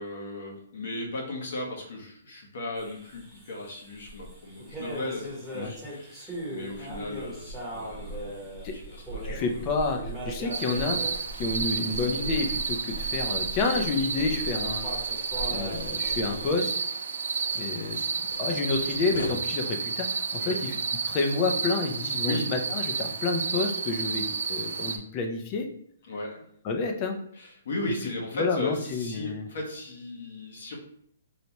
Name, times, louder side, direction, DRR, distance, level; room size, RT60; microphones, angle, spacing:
voice 1, 0.0-8.4 8.7-9.7 20.4-20.6 22.2-22.5 23.0-23.1 26.1-26.4 27.4-30.8, left 1 dB, 55° left, 0 dB, 1.0 m, -36 dB
sound 1, 2.8-16.6, right 1 dB, ahead, 0.9 m, -39 dB
voice 2, 9.2-14.9 15.5-16.7 17.5-18.0 18.4-20.8 21.0-25.7 26.6-27.2 28.3-29.5, left 4 dB, 25° left, 4 dB, 0.4 m, -29 dB
sound 2, 10.5-25.0, right 5 dB, 80° right, 0.4 m, -31 dB
sound 3, 14.0-17.2 17.4-19.3, left 3 dB, 80° left, 0.5 m, -45 dB
4.0 x 2.2 x 2.9 m, 0.67 s
hypercardioid pair, 170°, 0 cm